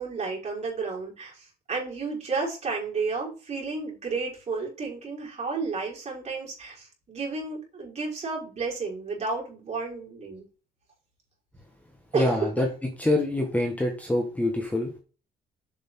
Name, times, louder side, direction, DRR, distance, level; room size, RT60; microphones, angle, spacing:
voice 1, 0.0-10.4 12.1-12.6, right 4 dB, 40° right, -2 dB, 5.1 m, -32 dB
voice 2, 12.1-12.7 13.0-14.9, left 1 dB, 10° left, 2 dB, 1.7 m, -25 dB
7.6 x 6.7 x 3.9 m, 0.35 s
cardioid pair, 110°, 17 cm